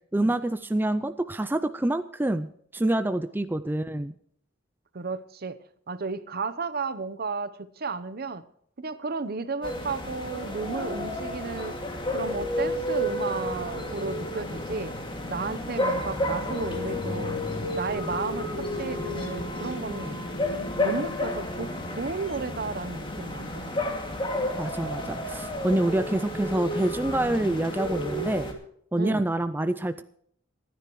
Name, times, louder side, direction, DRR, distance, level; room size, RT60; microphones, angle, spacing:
voice 1, 0.1-2.5 2.7-4.1 24.6-28.5 28.9-30.0, right 1 dB, 10° right, 10 dB, 0.4 m, -26 dB
voice 2, 4.9-5.6 5.9-8.4 8.8-11.8 12.1-14.9 15.3-17.4 17.7-20.2 20.8-23.8 25.0-25.2 28.9-29.3, right 4 dB, 55° right, 13 dB, 0.9 m, -33 dB
sound 1, 9.6-28.5, left 1 dB, 25° left, 2.3 m, -31 dB
27.0 x 10.0 x 3.1 m, 0.67 s
head